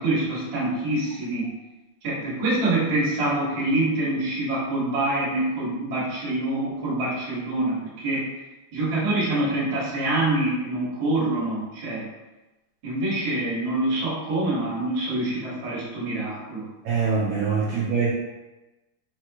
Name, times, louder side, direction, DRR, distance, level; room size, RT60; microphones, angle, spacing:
voice 1, 0.0-1.5 2.0-8.2 8.7-12.0 12.8-16.6 17.6-17.7, right 2 dB, 40° right, -8 dB, 1.5 m, -25 dB
voice 2, 16.8-18.1, right 5 dB, 80° right, -6 dB, 1.6 m, -23 dB
5.1 x 3.1 x 2.9 m, 1.1 s
omnidirectional pair, 3.8 m